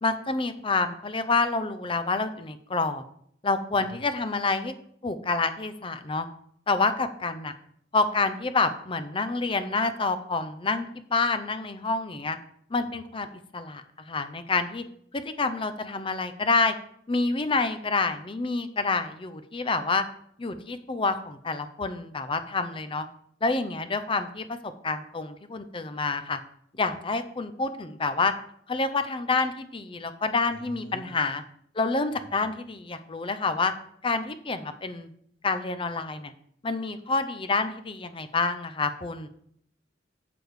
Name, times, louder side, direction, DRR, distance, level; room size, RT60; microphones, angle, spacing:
voice 1, 0.0-3.0 3.4-4.7 5.0-6.3 6.7-7.5 7.9-12.4 12.7-13.3 13.5-14.8 15.1-16.7 17.1-20.1 20.4-23.1 23.4-26.4 26.7-28.3 28.7-31.4 31.7-33.7 34.0-35.1 35.4-36.3 36.6-39.3, left 3 dB, 30° left, 11 dB, 0.6 m, -28 dB
voice 2, 30.5-31.4 32.1-32.5, equal, 90° left, -1 dB, 2.1 m, -47 dB
7.9 x 6.9 x 4.8 m, 0.66 s
head